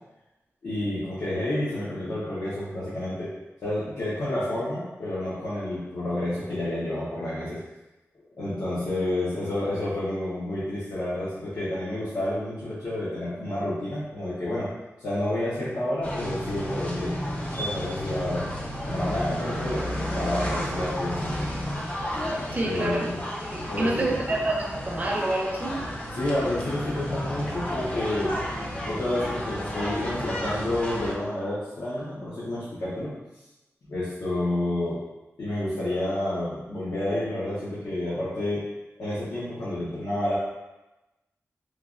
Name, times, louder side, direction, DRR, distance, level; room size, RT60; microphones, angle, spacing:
voice 1, 0.6-3.3 3.6-7.6 8.4-14.7 15.0-17.2 17.6-18.5 18.9-21.3 22.6-23.2 23.7-24.1 26.1-28.4 28.9-33.2 33.9-35.0 35.4-38.6 39.0-40.4, left 1 dB, 75° left, -10 dB, 0.7 m, -29 dB
sound 1, 16.0-31.1, equal, 25° left, 0.5 m, -32 dB
voice 2, 22.5-23.1 23.4-25.8, right 2 dB, 30° right, -2 dB, 0.5 m, -28 dB
3.2 x 2.3 x 2.4 m, 1.0 s
wide cardioid pair, 115°, 5 cm